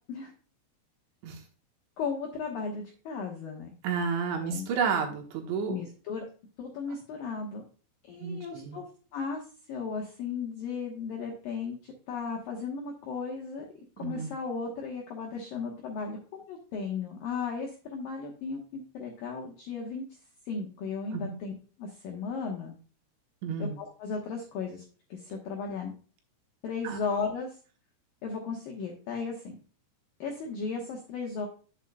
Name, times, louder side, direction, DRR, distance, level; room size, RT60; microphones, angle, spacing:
voice 1, 2.0-3.7 4.4-4.7 5.7-6.3 6.6-7.6 8.1-8.8 9.1-9.4 9.7-13.7 14.0-20.0 20.5-21.5 21.8-22.8 23.6-24.8 25.1-25.9 26.6-27.6 28.2-29.6 30.2-31.5, left 5 dB, 75° left, 0 dB, 2.1 m, -35 dB
voice 2, 3.8-5.8 8.2-8.8 14.0-14.3 21.1-21.4 23.4-23.8 26.8-27.0, right 5 dB, 70° right, 2 dB, 3.3 m, -31 dB
9.0 x 8.1 x 2.2 m, 0.38 s
omnidirectional pair, 5.9 m